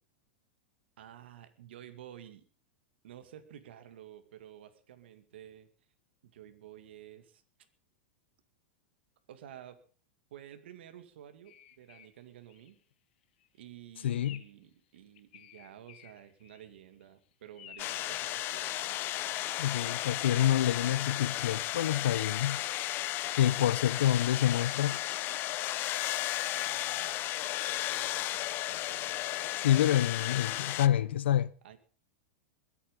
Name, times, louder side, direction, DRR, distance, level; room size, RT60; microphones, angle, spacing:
voice 1, 1.0-2.4 3.0-5.7 6.2-7.4 9.3-9.8 10.3-12.8 13.6-18.7 26.5-27.3 27.7-29.8 31.6-31.8, right 11 dB, 80° right, 2.2 m, -52 dB
sound 1, 11.4-12.1 12.5-12.8 13.2-13.5 14.2-14.6 15.0-16.8 17.0-17.1 17.5-18.1 19.0-19.7 20.4-22.3, left 11 dB, 70° left, 1.6 m, -54 dB
voice 2, 14.0-14.4 19.6-22.6 23.4-25.0 29.6-31.5, left 11 dB, 90° left, 0.8 m, -27 dB
sound 2, 17.8-30.9, left 15 dB, 40° left, 0.7 m, -34 dB
21.5 x 8.6 x 5.3 m
supercardioid pair, 135°, 6 cm